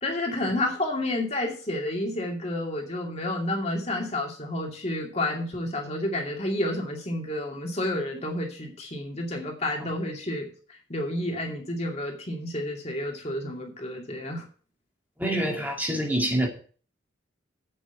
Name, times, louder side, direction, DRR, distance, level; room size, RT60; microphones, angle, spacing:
voice 1, 0.0-14.4, left 1 dB, 30° left, 1 dB, 2.4 m, -30 dB
voice 2, 15.2-16.5, right 1 dB, 10° right, 1 dB, 2.2 m, -26 dB
8.5 x 6.1 x 8.0 m, 0.42 s
head